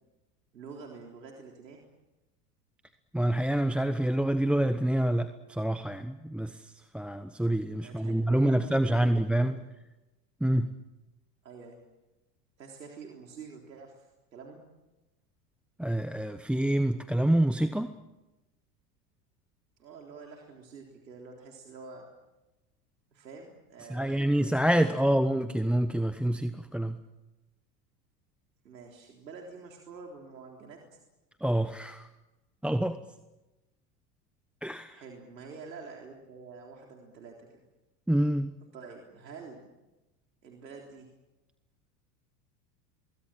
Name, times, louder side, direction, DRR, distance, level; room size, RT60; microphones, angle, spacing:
voice 1, 0.5-1.8 7.8-9.6 11.4-11.8 12.6-14.7 19.8-22.1 23.1-24.5 24.7-25.2 28.6-31.0 34.9-37.6 38.7-39.7 40.4-41.1, right 4 dB, 90° right, 0 dB, 3.8 m, -47 dB
voice 2, 3.1-6.6 6.9-9.5 10.4-10.7 15.8-17.9 23.9-27.0 31.4-32.1 32.6-33.0 34.6-35.0 38.1-38.5, right 1 dB, ahead, 10 dB, 1.0 m, -27 dB
24.5 x 22.0 x 7.6 m, 1.0 s
hypercardioid pair, 85°, 49 cm